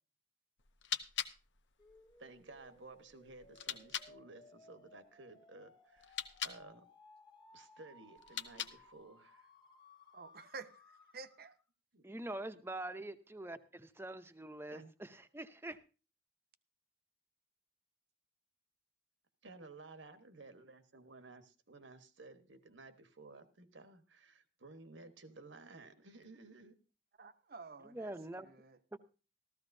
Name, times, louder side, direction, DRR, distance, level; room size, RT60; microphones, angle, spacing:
sound 1, 0.6-4.1 6.0-6.6 8.2-9.0, left 9 dB, 75° left, 0.7 m, -43 dB
sound 2, 1.8-11.6, left 2 dB, 25° left, 1.1 m, -62 dB
voice 1, 2.2-6.2 6.4-6.8 7.5-9.5 11.9-12.1 14.7-14.9 19.4-21.4 21.7-26.7, right 3 dB, 85° right, 1.3 m, -55 dB
voice 2, 10.1-10.8 11.1-11.5 27.2-28.8, right 4 dB, 55° right, 0.7 m, -51 dB
voice 3, 12.0-15.8 27.8-28.5 28.9-29.0, right 1 dB, 15° right, 0.6 m, -44 dB
14.5 x 14.0 x 2.6 m
head